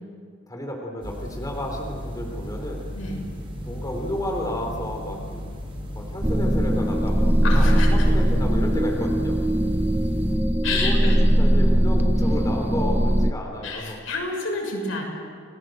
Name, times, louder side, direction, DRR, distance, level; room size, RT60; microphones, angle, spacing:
voice 1, 0.5-2.9 3.6-5.4 5.9-9.4 10.7-14.0, left 1 dB, 20° left, 1 dB, 3.8 m, -32 dB
sound 1, 1.0-10.4, equal, 25° right, 6.0 m, -36 dB
sound 2, 6.2-13.3, equal, 10° right, 0.8 m, -20 dB
voice 2, 7.4-7.9 10.6-11.2 13.6-15.0, left 3 dB, 85° left, 1 dB, 6.5 m, -29 dB
29.5 x 19.5 x 7.8 m, 2.1 s
head